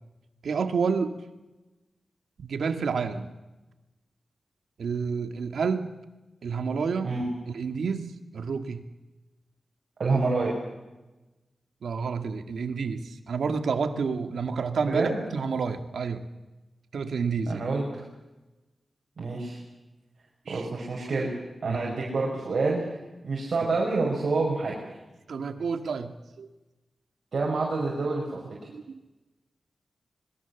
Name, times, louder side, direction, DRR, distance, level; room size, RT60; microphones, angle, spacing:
voice 1, 0.4-1.1 2.4-3.3 4.8-5.9 6.4-7.1 7.5-8.8 11.8-16.3 16.9-17.6 20.5-20.7 21.6-22.0 25.3-26.5 28.7-28.9, right 5 dB, 85° right, 8 dB, 2.1 m, -29 dB
voice 2, 10.0-10.5 14.9-15.2 17.5-17.8 19.2-19.6 20.5-21.3 21.6-22.8 23.2-24.8 27.3-28.4, right 3 dB, 60° right, -2 dB, 5.7 m, -27 dB
26.0 x 21.5 x 7.3 m, 1.1 s
wide cardioid pair, 120°, 0 cm